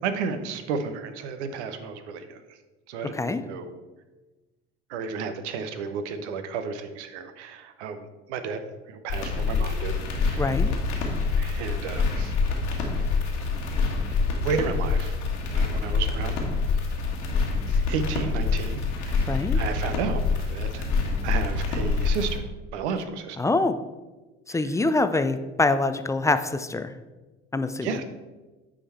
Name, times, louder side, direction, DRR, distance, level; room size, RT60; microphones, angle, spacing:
voice 1, 0.0-2.4 2.9-3.8 4.9-8.6 8.9-9.9 10.2-10.6 11.4-12.3 14.4-15.1 15.5-16.4 17.7-20.9 21.2-22.4 22.7-23.4 24.5-24.8 25.1-25.2 27.8-28.0, right 5 dB, 70° right, 9 dB, 0.9 m, -32 dB
sound 1, 9.1-22.4, left 4 dB, 75° left, 1.6 m, -26 dB
voice 2, 10.4-10.7 19.3-19.6 23.4-23.8 24.5-26.9 27.5-27.9, left 3 dB, 10° left, 10 dB, 0.4 m, -24 dB
8.8 x 5.0 x 4.3 m, 1.2 s
hypercardioid pair, 65°, 35 cm